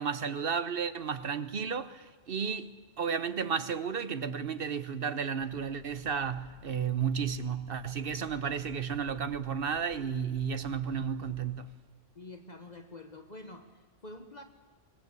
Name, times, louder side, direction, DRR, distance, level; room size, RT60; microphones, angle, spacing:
voice 1, 0.0-2.7 3.0-11.7, right 7 dB, 55° right, 1.1 m, -33 dB
sound 1, 5.4-11.6, left 2 dB, 35° right, 7.0 m, -56 dB
voice 2, 12.1-14.4, left 2 dB, 40° left, 1.3 m, -47 dB
25.0 x 20.5 x 8.1 m
omnidirectional pair, 1.2 m